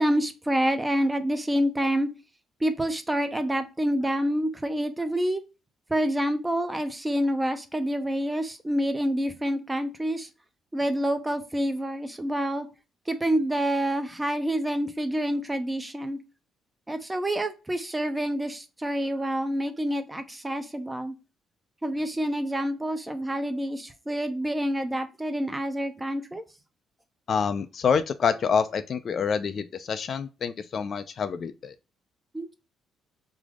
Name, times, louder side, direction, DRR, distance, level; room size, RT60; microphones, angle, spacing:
voice 1, 0.0-2.1 2.6-5.4 5.9-10.3 10.7-12.7 13.1-16.2 16.9-21.1 21.8-26.4 32.3-32.6, equal, 15° right, 0.5 m, -27 dB
voice 2, 27.3-31.7, left 6 dB, 55° left, 0.3 m, -27 dB
3.3 x 2.0 x 3.5 m
cardioid pair, 90°, 0 cm